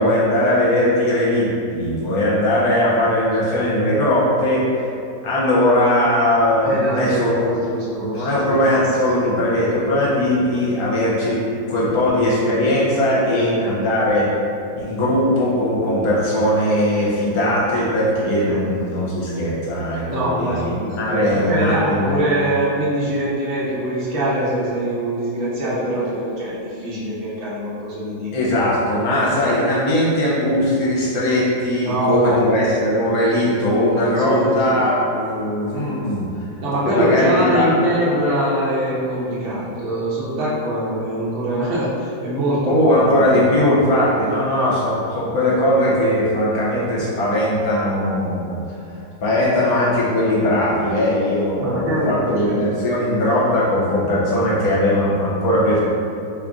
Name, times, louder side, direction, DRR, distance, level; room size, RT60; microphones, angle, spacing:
voice 1, 0.0-4.7 5.2-7.6 8.0-11.4 11.7-14.3 14.7-22.2 28.3-36.3 36.8-37.7 42.6-48.6 49.2-55.8, left 1 dB, 70° left, -6 dB, 1.2 m, -19 dB
voice 2, 3.0-3.4 6.6-8.6 13.3-13.6 18.5-18.7 20.1-28.5 29.3-29.7 31.8-32.7 34.2-34.8 36.6-43.1 44.1-44.3 51.6-52.6, right 1 dB, 45° right, -8 dB, 0.8 m, -23 dB
2.9 x 2.5 x 3.6 m, 2.6 s
omnidirectional pair, 1.8 m